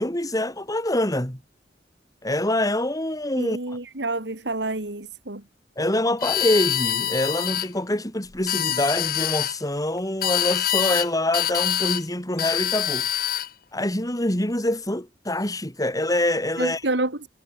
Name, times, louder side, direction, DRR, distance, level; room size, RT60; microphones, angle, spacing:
voice 1, 0.0-1.4 2.2-3.6 5.8-13.1 13.7-16.8, left 1 dB, 20° left, 4.7 m, -25 dB
voice 2, 3.4-5.4 16.6-17.3, right 2 dB, 75° right, 2.8 m, -28 dB
sound 1, 6.2-7.7 8.3-9.5 10.2-11.1 11.3-12.0 12.4-13.5, left 11 dB, 55° left, 0.8 m, -25 dB
head